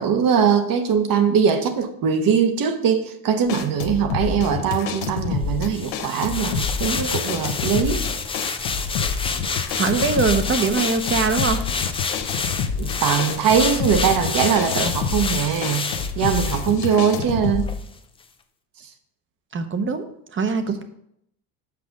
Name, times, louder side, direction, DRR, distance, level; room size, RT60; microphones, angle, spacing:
voice 1, 0.0-8.0 12.8-15.9 16.2-17.7, right 7 dB, 45° right, 1.1 m, -21 dB
sound 1, 3.5-17.7, left 6 dB, 70° left, 1.0 m, -28 dB
sound 2, 5.7-17.3 17.6-17.8, left 5 dB, 15° left, 0.3 m, -28 dB
voice 2, 9.7-11.6 19.5-20.0 20.3-20.8, right 4 dB, 25° right, 0.9 m, -22 dB
5.9 x 5.0 x 6.6 m
supercardioid pair, 110°, 48 cm